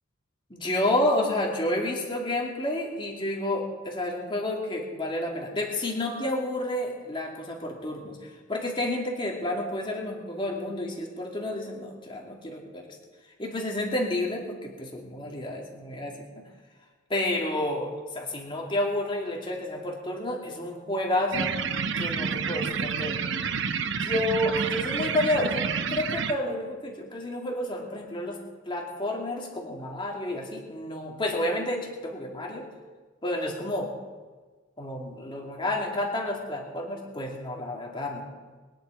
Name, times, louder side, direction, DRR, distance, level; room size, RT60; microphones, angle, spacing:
voice 1, 0.5-8.2 8.5-12.9 13.4-16.4 17.1-21.5 21.9-23.2 23.8-32.7 33.2-33.9 34.8-38.3, left 1 dB, 25° left, 0 dB, 2.5 m, -30 dB
sound 1, 21.3-26.3, right 6 dB, 60° right, 0.8 m, -29 dB
22.0 x 10.5 x 4.7 m, 1.4 s
head